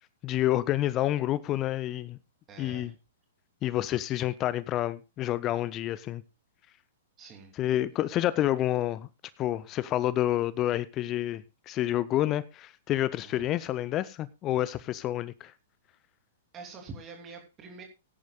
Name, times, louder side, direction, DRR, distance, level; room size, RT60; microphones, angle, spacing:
voice 1, 0.2-2.2 2.6-2.9 3.6-6.2 7.6-9.1 9.4-15.5, left 13 dB, 30° left, 0.5 m, -29 dB
voice 2, 2.5-2.9 7.2-7.5 13.2-13.5 16.5-17.8, right 4 dB, 25° right, 3.0 m, -46 dB
19.5 x 10.5 x 2.3 m
figure-of-eight pair, 110°, 0 cm